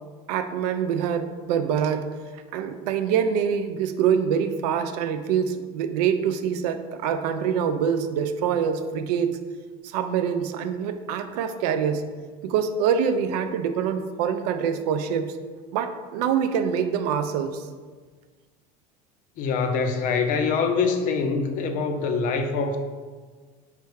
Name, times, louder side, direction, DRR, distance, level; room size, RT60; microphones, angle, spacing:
voice 1, 0.3-2.1 2.5-9.4 9.8-12.0 12.4-15.3 15.7-17.6, right 7 dB, 85° right, 9 dB, 0.4 m, -25 dB
voice 2, 19.4-22.8, left 5 dB, 45° left, 6 dB, 0.5 m, -24 dB
3.5 x 3.3 x 4.6 m, 1.5 s
supercardioid pair, 135°, 20 cm